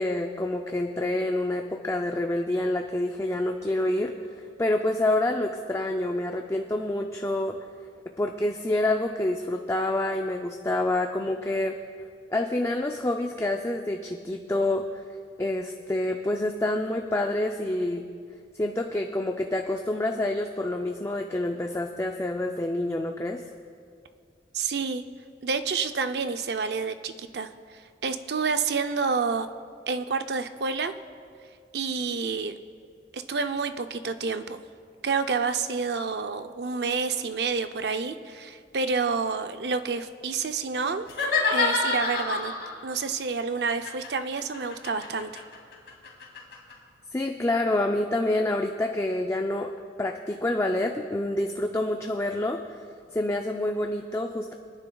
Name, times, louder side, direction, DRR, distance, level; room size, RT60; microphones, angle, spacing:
voice 1, 0.0-7.6 8.2-11.8 12.3-14.8 15.4-18.1 18.6-23.4 47.1-49.7 50.0-52.8 53.1-54.5, left 1 dB, 15° left, 3 dB, 0.4 m, -27 dB
voice 2, 24.5-25.0 25.4-27.5 28.0-29.5 29.9-30.9 31.7-32.6 33.1-34.6 35.0-41.1 41.5-42.5 42.8-45.4, right 5 dB, 65° right, 9 dB, 0.5 m, -29 dB
sound 1, 41.1-42.8 43.7-46.7, left 3 dB, 70° left, 2.3 m, -28 dB
25.0 x 9.8 x 2.3 m, 2.2 s
head